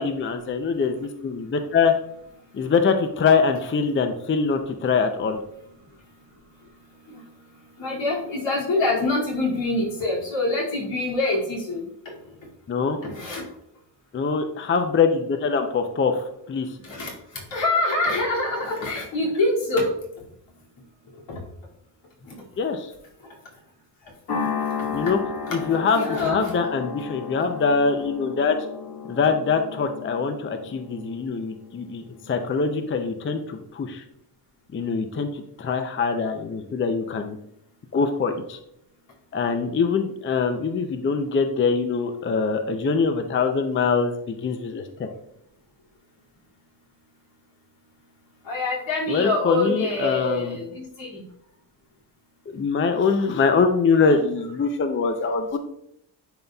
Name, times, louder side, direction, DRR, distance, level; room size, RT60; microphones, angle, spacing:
voice 1, 0.0-1.9 2.5-5.4 12.7-13.0 14.1-16.7 22.6-22.9 24.9-25.2 25.5-28.6 29.1-34.0 34.7-37.4 37.9-38.6 39.3-45.1 49.1-50.6 52.5-55.6, left 5 dB, 30° left, 7 dB, 0.5 m, -23 dB
voice 2, 7.8-12.1 13.0-13.4 16.8-19.9 21.3-21.4 22.2-22.4 23.2-23.3 25.0-25.1 25.7-26.4 48.4-51.2, left 2 dB, 80° left, -4 dB, 2.4 m, -25 dB
sound 1, 24.3-32.8, left 6 dB, 60° left, 1.7 m, -34 dB
10.5 x 4.0 x 2.3 m, 0.74 s
cardioid pair, 115°, 44 cm